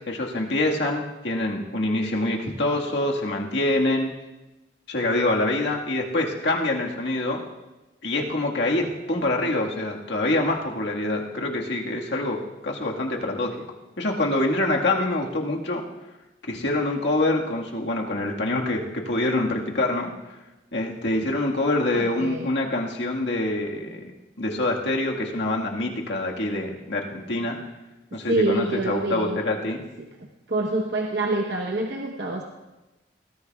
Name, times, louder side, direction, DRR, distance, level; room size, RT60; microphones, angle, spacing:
voice 1, 0.1-4.1 4.9-7.4 8.0-13.5 14.0-15.8 16.5-20.1 20.7-24.1 24.4-27.6 28.1-29.8, left 2 dB, 80° left, 0 dB, 1.7 m, -25 dB
voice 2, 21.9-22.5 28.1-29.4 30.0-30.1 30.5-32.4, right 2 dB, 70° right, 0 dB, 1.0 m, -26 dB
20.0 x 14.5 x 2.3 m, 1.1 s
head